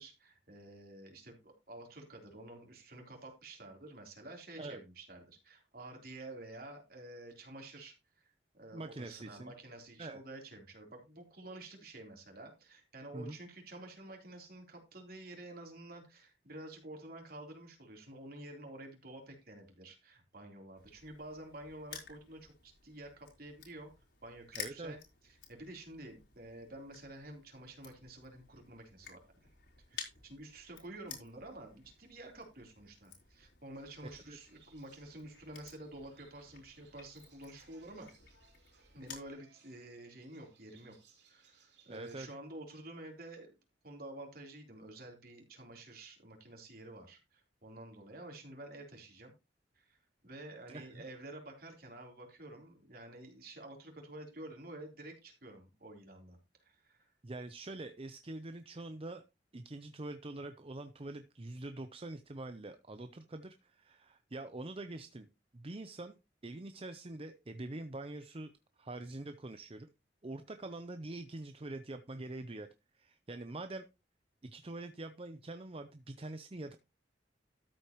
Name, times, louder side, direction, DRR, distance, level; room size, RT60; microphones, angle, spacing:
voice 1, 0.0-23.9 24.2-25.0 25.2-29.5 29.9-38.1 38.9-40.9 41.3-43.5 43.8-49.3 49.7-57.1, right 1 dB, 55° right, 2 dB, 3.7 m, -50 dB
voice 2, 8.7-9.5 10.0-10.2 13.1-13.4 24.5-25.0 34.3-34.4 41.9-42.3 50.7-51.0 57.2-59.2 59.5-65.3 65.5-66.2 66.4-68.5 68.8-69.9 70.2-72.7 73.0-73.9 74.4-76.7, right 2 dB, 30° right, 9 dB, 0.7 m, -44 dB
Crushing, 20.8-39.3, left 6 dB, 65° left, 4.0 m, -53 dB
sound 1, 33.7-42.2, right 6 dB, 85° right, 4.4 m, -67 dB
13.0 x 8.1 x 3.0 m, 0.25 s
head